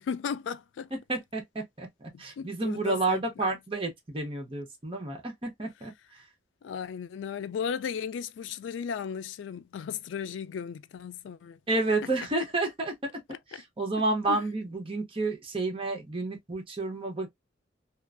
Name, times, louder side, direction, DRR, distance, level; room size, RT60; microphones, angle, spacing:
voice 1, 0.0-0.9 2.1-3.5 6.6-11.6 13.3-13.6 14.3-14.4, left 7 dB, 80° left, 0.3 m, -36 dB
voice 2, 0.9-1.9 2.2-5.9 11.7-12.9 13.5-17.3, right 2 dB, 30° right, 0.9 m, -30 dB
2.9 x 2.5 x 2.4 m
head